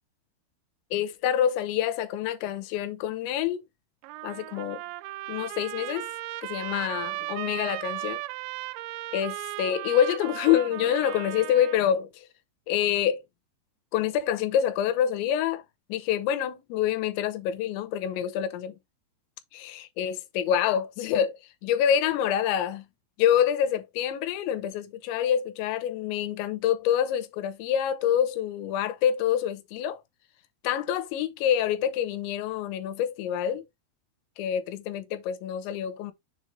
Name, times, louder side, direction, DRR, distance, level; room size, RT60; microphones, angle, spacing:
voice 1, 0.9-3.6 4.2-4.8 5.3-6.1 6.4-8.2 9.1-12.3 12.7-13.2 13.9-15.6 15.9-18.8 19.5-22.8 23.2-30.0 30.6-33.6 34.4-36.1, left 10 dB, 85° left, 3.2 m, -26 dB
Trumpet, 4.0-11.9, right 19 dB, 85° right, 2.8 m, -36 dB
7.0 x 3.1 x 5.1 m
omnidirectional pair, 5.1 m